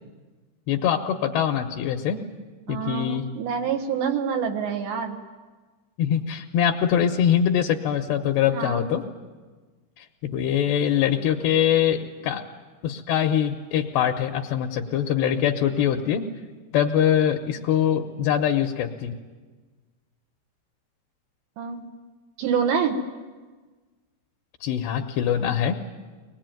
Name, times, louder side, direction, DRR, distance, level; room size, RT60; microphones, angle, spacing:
voice 1, 0.7-2.2 2.7-3.2 6.0-9.0 10.0-12.4 12.8-16.2 16.7-19.1 24.6-25.7, left 9 dB, 75° left, 4 dB, 2.8 m, -23 dB
voice 2, 2.7-5.2 8.5-8.9 21.6-21.8 22.4-23.0, right 7 dB, 70° right, 4 dB, 3.5 m, -26 dB
24.0 x 20.0 x 9.1 m, 1.4 s
omnidirectional pair, 5.4 m